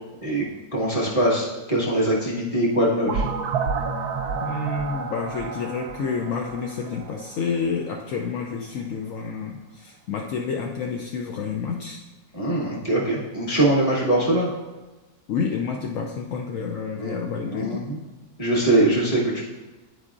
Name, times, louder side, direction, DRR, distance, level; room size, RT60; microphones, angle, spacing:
voice 1, 0.7-3.3 12.3-14.5 16.9-17.1 17.5-18.0 18.4-19.4, right 1 dB, 20° left, -5 dB, 1.2 m, -22 dB
sound 1, 3.1-7.8, right 5 dB, 75° right, 1.0 m, -30 dB
voice 2, 4.4-12.0 15.3-17.8, left 5 dB, 75° left, 1 dB, 0.7 m, -29 dB
9.4 x 4.8 x 2.4 m, 1.2 s
omnidirectional pair, 1.9 m